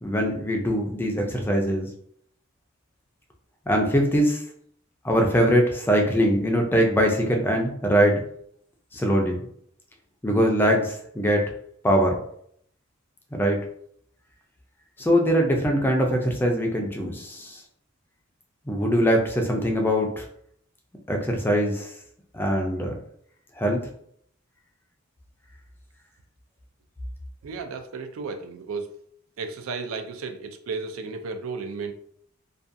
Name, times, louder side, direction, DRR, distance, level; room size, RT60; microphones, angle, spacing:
voice 1, 0.0-1.9 3.7-4.4 5.0-8.2 8.9-9.4 10.2-11.5 11.8-12.2 13.3-13.6 15.0-17.6 18.7-20.2 21.1-21.9 22.3-22.9 23.6-23.8, equal, 10° left, 1 dB, 0.3 m, -22 dB
voice 2, 27.4-29.0 29.4-31.9, right 4 dB, 80° right, 6 dB, 0.4 m, -33 dB
2.5 x 2.2 x 2.5 m, 0.66 s
head